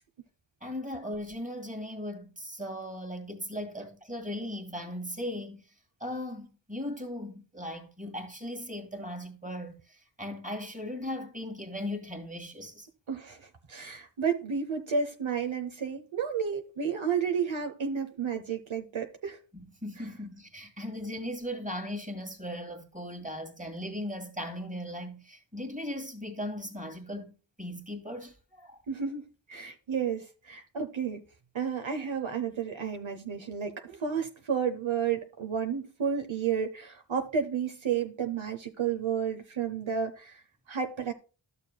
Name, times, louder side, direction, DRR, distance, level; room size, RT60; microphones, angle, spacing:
voice 1, 0.6-5.7 6.0-12.9 19.5-28.8, left 1 dB, 15° right, 2.0 m, -38 dB
voice 2, 13.1-19.4 20.0-20.1 28.9-31.2 31.5-41.1, right 6 dB, 70° right, 0.9 m, -32 dB
12.5 x 6.8 x 2.2 m
wide cardioid pair, 45°, 49 cm